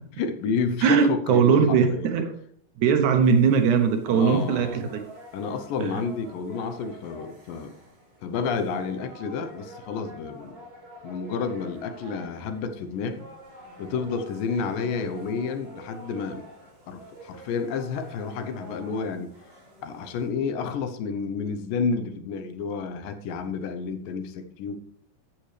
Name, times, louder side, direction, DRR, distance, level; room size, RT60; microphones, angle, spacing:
voice 1, 0.2-2.1 4.1-4.8 5.3-7.7 8.2-10.6 11.0-13.2 13.8-16.5 16.9-19.3 19.8-24.8, left 5 dB, 85° left, 8 dB, 2.5 m, -30 dB
voice 2, 0.8-2.3 2.8-5.0 5.8-5.9, right 6 dB, 70° right, 6 dB, 2.1 m, -20 dB
sound 1, 3.2-20.3, equal, 50° right, 5.6 m, -47 dB
13.0 x 7.1 x 3.2 m, 0.65 s
omnidirectional pair, 3.9 m